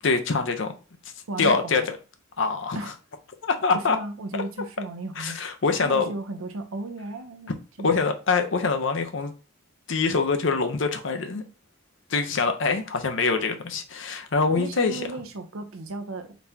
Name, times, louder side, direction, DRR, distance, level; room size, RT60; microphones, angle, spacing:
voice 1, 0.0-0.7 1.4-1.8 2.4-2.8 3.4-4.0 5.2-6.1 7.8-9.3 9.9-11.4 12.1-15.0, left 4 dB, 65° left, 0.7 m, -24 dB
voice 2, 1.3-1.9 2.7-2.9 3.7-5.4 5.8-7.5 7.8-8.1 14.6-16.4, right 2 dB, 80° right, 0.6 m, -35 dB
4.0 x 3.5 x 2.7 m
head